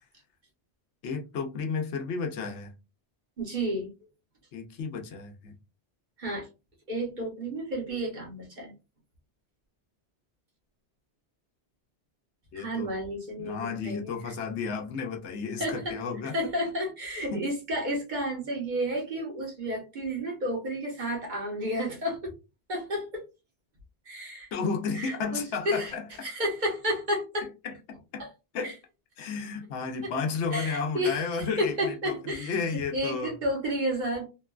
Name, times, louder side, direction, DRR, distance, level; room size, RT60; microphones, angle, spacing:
voice 1, 1.0-2.7 4.5-5.6 12.5-12.9 13.4-16.3 17.3-17.5 24.5-26.3 27.6-28.2 28.5-28.7 29.2-33.3, left 5 dB, 90° left, 1.0 m, -33 dB
voice 2, 3.4-3.9 6.2-6.5 6.9-8.7 12.5-14.1 15.6-16.0 16.3-22.3 22.7-23.2 24.1-24.5 24.9-25.9 26.2-27.5 28.6-28.7 30.0-30.1 30.5-34.3, equal, 45° right, 1.1 m, -31 dB
3.0 x 2.2 x 2.2 m
omnidirectional pair, 1.1 m